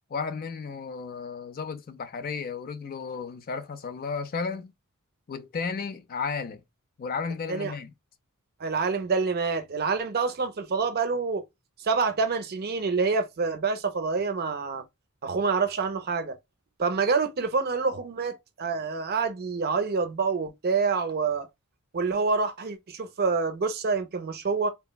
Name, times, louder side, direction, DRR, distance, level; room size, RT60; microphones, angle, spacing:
voice 1, 0.1-4.7 5.3-6.6 7.0-7.9, left 5 dB, 40° left, 0.4 m, -33 dB
voice 2, 8.6-11.5 11.8-14.8 15.2-16.4 16.8-21.5 21.9-24.7, right 4 dB, 45° right, 0.5 m, -27 dB
3.4 x 2.0 x 2.2 m
head